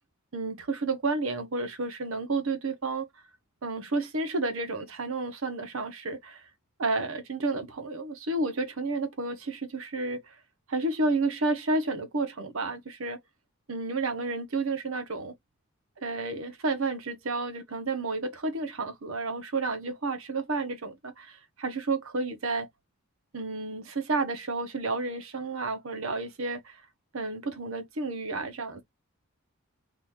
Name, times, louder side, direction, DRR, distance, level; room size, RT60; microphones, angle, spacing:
voice 1, 0.3-3.1 3.6-6.4 6.8-10.3 10.7-13.2 13.7-15.3 16.0-22.7 23.3-26.8 27.1-28.8, right 3 dB, 70° right, 0.9 m, -31 dB
2.9 x 2.6 x 3.5 m
head